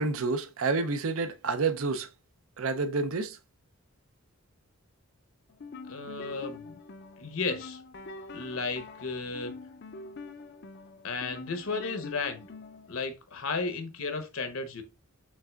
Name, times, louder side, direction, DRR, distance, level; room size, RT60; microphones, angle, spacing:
voice 1, 0.0-2.1 2.6-3.4, right 4 dB, 70° right, 0.6 m, -29 dB
sound 1, 5.5-13.0, left 3 dB, 50° left, 0.5 m, -45 dB
voice 2, 5.9-6.8 7.2-7.8 8.3-9.5 11.0-12.5 12.9-14.8, left 4 dB, 70° left, 0.9 m, -34 dB
6.3 x 3.4 x 2.3 m
head